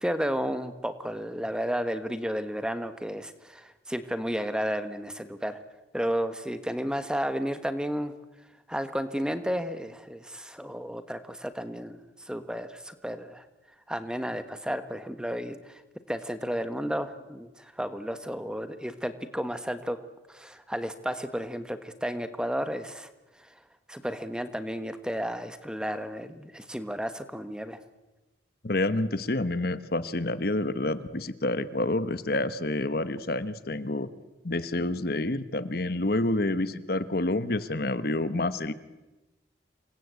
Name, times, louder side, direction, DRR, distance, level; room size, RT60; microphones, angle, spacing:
voice 1, 0.0-5.6 5.9-8.1 8.7-12.0 12.3-13.4 13.9-15.8 16.1-20.0 20.3-23.1 23.9-27.8, equal, 5° right, 10 dB, 1.3 m, -32 dB
voice 2, 28.6-34.1 34.4-38.7, left 2 dB, 55° left, 13 dB, 1.1 m, -28 dB
28.0 x 22.5 x 8.3 m, 1.1 s
head